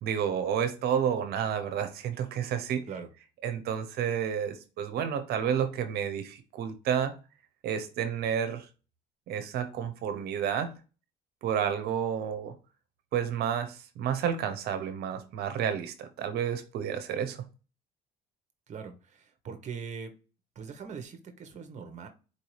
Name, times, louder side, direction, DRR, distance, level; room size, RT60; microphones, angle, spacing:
voice 1, 0.0-2.8 3.4-7.1 7.6-8.7 9.3-10.7 11.4-12.6 13.1-17.4, right 8 dB, 70° right, 0.8 m, -30 dB
voice 2, 18.7-20.1 20.6-22.1, right 6 dB, 45° right, 1.0 m, -41 dB
4.4 x 2.7 x 3.1 m
cardioid pair, 110°, 17 cm